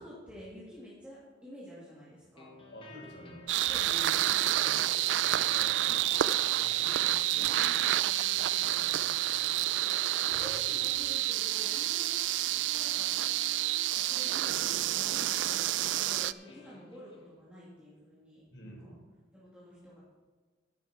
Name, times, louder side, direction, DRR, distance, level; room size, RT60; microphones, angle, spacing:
voice 1, 0.0-2.5 3.7-3.9 5.7-6.0 7.3-7.8 10.1-13.3 13.9-18.9 19.3-20.0, equal, 10° right, -10 dB, 3.0 m, -50 dB
sound 1, 2.4-17.3, left 2 dB, 30° left, 1.5 m, -53 dB
voice 2, 2.7-3.5 3.8-4.2 4.6-4.8 5.2-6.0 6.3-7.8 8.1-10.1 10.5-10.6 18.5-19.1, equal, 90° left, -1 dB, 3.9 m, -50 dB
sound 2, 3.5-16.3, right 14 dB, 80° right, 0.3 m, -29 dB
11.0 x 10.5 x 4.5 m, 1.4 s
head